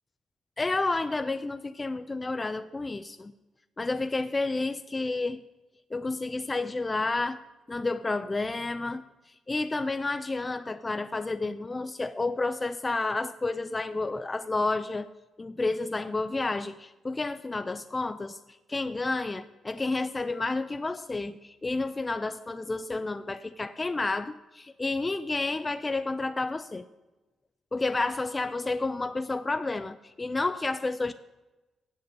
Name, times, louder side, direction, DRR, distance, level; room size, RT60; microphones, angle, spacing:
voice 1, 0.6-3.3 3.8-5.4 5.9-7.4 7.7-9.0 9.5-15.1 15.4-18.4 18.7-26.9 27.7-31.1, left 3 dB, 25° left, 11 dB, 0.4 m, -30 dB
8.0 x 6.5 x 8.2 m, 1.1 s
cardioid pair, 75°, 0 cm